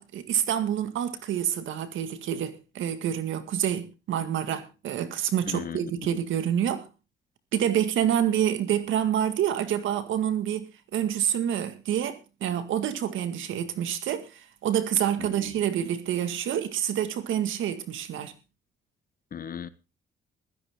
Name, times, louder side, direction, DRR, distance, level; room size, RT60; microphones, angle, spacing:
voice 1, 0.0-6.9 7.5-10.7 10.9-18.3, right 10 dB, 80° right, 1.9 m, -27 dB
voice 2, 5.5-6.2 15.2-15.5 19.3-19.7, left 8 dB, 45° left, 1.1 m, -37 dB
16.0 x 13.0 x 3.7 m
cardioid pair, 90°, 20 cm